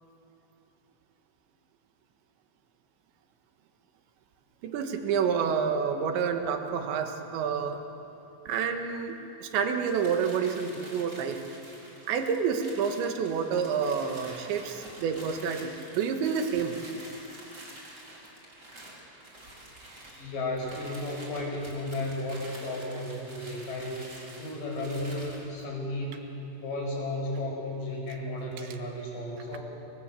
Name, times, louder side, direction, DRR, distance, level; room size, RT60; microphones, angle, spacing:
voice 1, 4.6-7.8 8.5-11.4 12.1-16.8, right 6 dB, 80° right, 5 dB, 3.8 m, -29 dB
sound 1, 9.7-25.5, right 1 dB, 25° right, 4.4 m, -48 dB
voice 2, 20.0-24.1 24.4-26.2 26.6-29.6, left 1 dB, 50° left, -1 dB, 6.7 m, -34 dB
29.0 x 23.0 x 7.6 m, 3.0 s
omnidirectional pair, 5.1 m